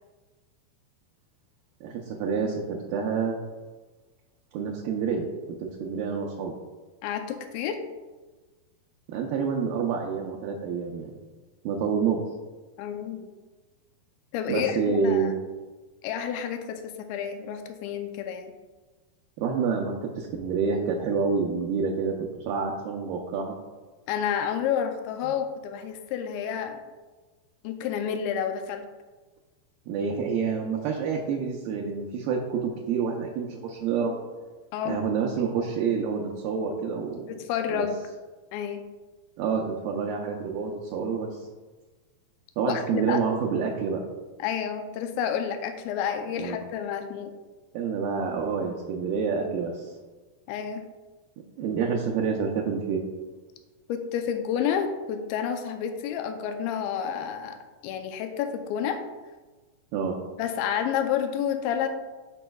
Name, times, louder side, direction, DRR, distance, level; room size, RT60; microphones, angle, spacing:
voice 1, 1.8-3.4 4.5-6.5 9.1-11.2 11.6-12.2 14.5-15.3 19.4-22.1 22.4-23.6 25.2-25.3 29.9-34.1 34.9-37.3 37.7-37.9 39.4-41.4 42.6-44.0 46.4-46.6 47.7-49.9 51.6-53.0 59.9-60.2, right 5 dB, 75° right, -1 dB, 2.2 m, -28 dB
voice 2, 7.0-7.8 12.8-13.2 14.3-15.3 16.0-18.5 24.1-26.8 27.6-28.9 34.7-35.0 37.4-38.0 38.5-38.8 42.6-43.2 44.4-47.3 50.5-50.8 53.9-57.6 57.8-59.0 60.4-61.9, left 8 dB, 85° left, 6 dB, 2.5 m, -30 dB
13.0 x 5.4 x 2.3 m, 1.3 s
omnidirectional pair, 4.3 m